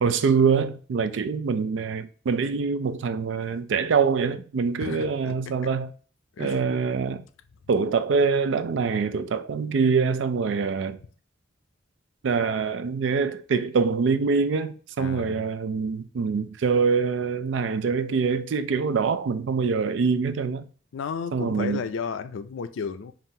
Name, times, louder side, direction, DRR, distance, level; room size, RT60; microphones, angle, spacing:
voice 1, 0.0-5.9 6.4-7.2 7.7-11.0 12.2-20.7 21.3-21.9, right 5 dB, 75° right, 0.4 m, -24 dB
voice 2, 4.8-5.3 6.4-6.6 15.0-15.4 20.9-23.1, left 6 dB, 90° left, 0.4 m, -33 dB
5.5 x 2.5 x 2.6 m
head